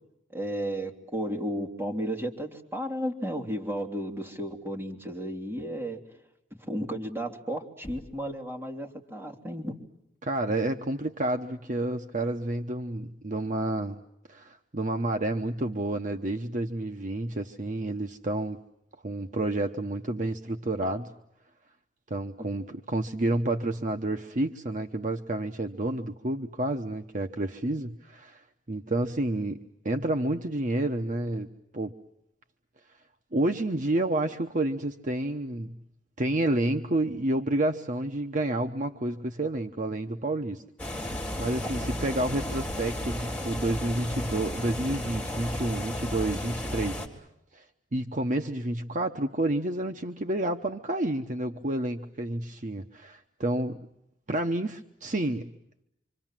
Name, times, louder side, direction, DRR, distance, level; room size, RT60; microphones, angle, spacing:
voice 1, 0.3-6.0 6.7-9.8 41.6-41.7, equal, 10° right, 1 dB, 3.3 m, -33 dB
Knock, 7.8-8.5, equal, 25° left, 3.0 m, -46 dB
voice 2, 10.2-14.0 14.3-18.6 19.0-21.1 22.1-28.4 28.7-29.6 29.8-31.9 33.3-35.8 36.2-41.1 41.4-47.0 47.5-47.6 47.9-53.8 54.3-55.5, right 1 dB, 45° right, 5 dB, 1.0 m, -29 dB
sound 1, 40.8-47.1, left 1 dB, 10° left, 4.0 m, -33 dB
26.5 x 26.5 x 7.5 m, 0.82 s
head